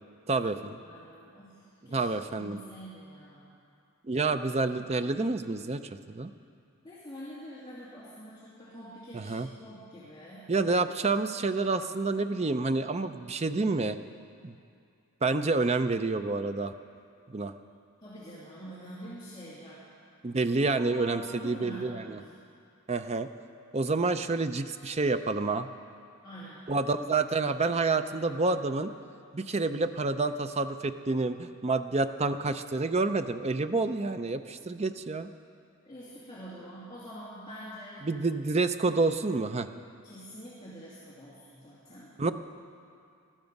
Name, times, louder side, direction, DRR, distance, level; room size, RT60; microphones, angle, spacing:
voice 1, 0.3-0.8 1.9-2.6 4.1-5.8 6.1-6.3 9.1-9.5 10.5-14.0 14.4-14.5 15.2-16.7 17.3-17.5 20.2-22.2 22.9-23.3 23.7-25.7 26.7-28.9 29.3-35.3 38.0-39.7 42.2-42.3, right 3 dB, 30° right, 9 dB, 0.5 m, -28 dB
voice 2, 0.8-2.0 2.3-3.6 6.8-10.7 18.0-19.8 20.8-22.3 26.2-26.7 35.8-38.1 40.0-42.1, equal, 20° left, -10 dB, 2.4 m, -46 dB
19.5 x 13.5 x 5.3 m, 2.4 s
head